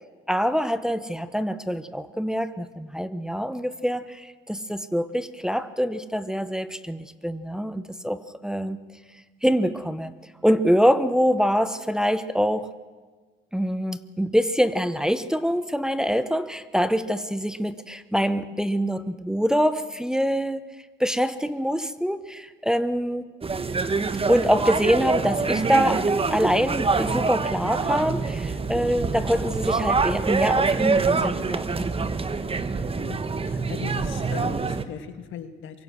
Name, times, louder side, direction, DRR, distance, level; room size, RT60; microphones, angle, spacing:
voice 1, 0.3-8.8 9.4-10.1 10.4-12.7 13.5-20.6 21.0-23.3 24.2-31.9, equal, 5° right, 1.0 m, -25 dB
sound 1, 23.4-34.8, right 4 dB, 30° right, 1.3 m, -25 dB
voice 2, 33.4-35.8, left 9 dB, 80° left, 1.8 m, -38 dB
24.0 x 22.5 x 6.3 m
cardioid pair, 90°, 20 cm